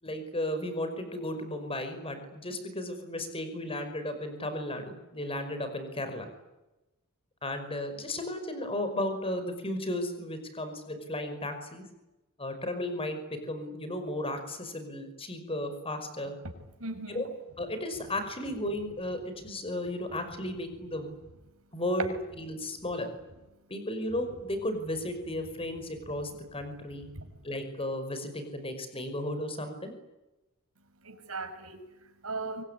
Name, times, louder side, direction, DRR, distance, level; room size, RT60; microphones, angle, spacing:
voice 1, 0.0-6.3 7.4-11.9 12.4-16.4 17.1-17.3 17.6-21.1 21.7-23.1 23.7-27.1 27.4-29.9, left 1 dB, 25° left, 8 dB, 5.4 m, -34 dB
voice 2, 16.8-17.2 27.1-27.3 31.0-32.6, right 3 dB, 70° right, 6 dB, 6.2 m, -38 dB
25.0 x 22.5 x 10.0 m, 0.99 s
head